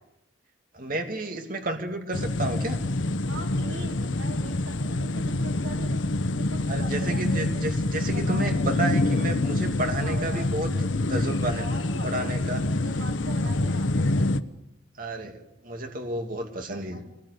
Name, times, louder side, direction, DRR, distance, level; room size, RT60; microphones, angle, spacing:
voice 1, 0.7-2.8 6.7-10.7 11.1-11.7 12.0-12.7 15.0-17.0, right 1 dB, 45° right, 4 dB, 2.6 m, -31 dB
sound 1, 2.1-14.4, left 2 dB, 80° left, 1.0 m, -26 dB
voice 2, 3.3-6.0 6.4-7.5 8.1-8.8 10.0-10.5 11.6-12.3 12.8-14.1 16.7-17.1, right 2 dB, 75° right, 1 dB, 4.5 m, -42 dB
24.5 x 19.5 x 8.4 m, 0.91 s
head